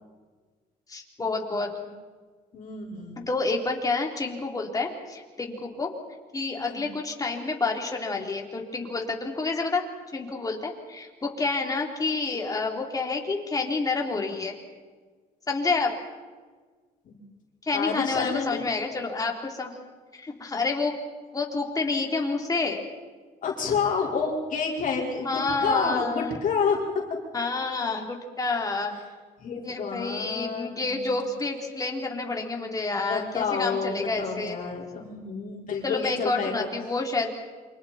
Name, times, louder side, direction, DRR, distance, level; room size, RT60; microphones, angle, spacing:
voice 1, 0.9-1.7 3.3-5.9 6.3-9.8 10.1-14.6 15.5-15.9 17.6-19.7 20.1-20.9 21.3-22.8 25.2-26.4 27.3-29.0 29.6-34.6 35.8-37.3, left 3 dB, 20° left, 1 dB, 3.6 m, -29 dB
voice 2, 2.5-3.3 6.6-6.9 17.0-17.2 17.7-18.6 23.4-26.8 29.4-31.1 33.0-36.7, left 5 dB, 50° left, -2 dB, 5.0 m, -29 dB
28.0 x 25.5 x 4.4 m, 1.4 s
cardioid pair, 110°, 17 cm